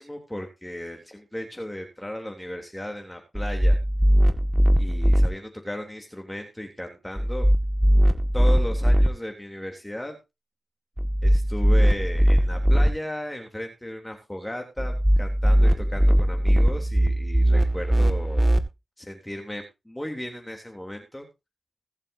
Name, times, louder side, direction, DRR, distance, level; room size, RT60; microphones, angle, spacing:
voice 1, 0.0-3.8 4.8-7.5 8.3-10.2 11.2-18.6 19.0-21.3, left 1 dB, 10° left, 3 dB, 3.3 m, -35 dB
sound 1, 3.3-5.3 7.2-9.1 11.0-12.9 14.8-18.6, equal, 15° right, 1.9 m, -20 dB
21.0 x 7.4 x 2.8 m, 0.25 s
cardioid pair, 45°, 0 cm